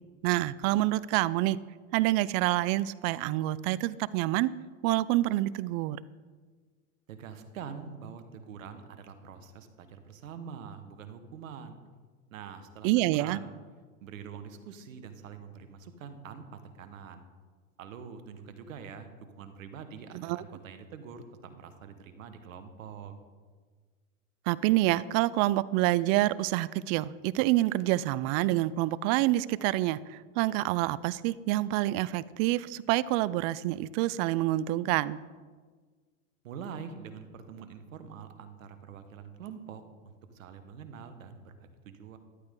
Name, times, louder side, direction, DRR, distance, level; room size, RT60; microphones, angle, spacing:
voice 1, 0.2-1.6 1.9-4.5 4.8-6.0 12.8-13.4 20.1-20.4 24.5-35.2, right 16 dB, 45° right, 19 dB, 0.5 m, -27 dB
voice 2, 7.1-11.8 12.3-13.5 14.0-17.2 17.8-23.1 36.4-42.2, right 6 dB, 80° right, 9 dB, 1.5 m, -45 dB
13.5 x 11.5 x 3.8 m, 1.5 s
hypercardioid pair, 105°, 39 cm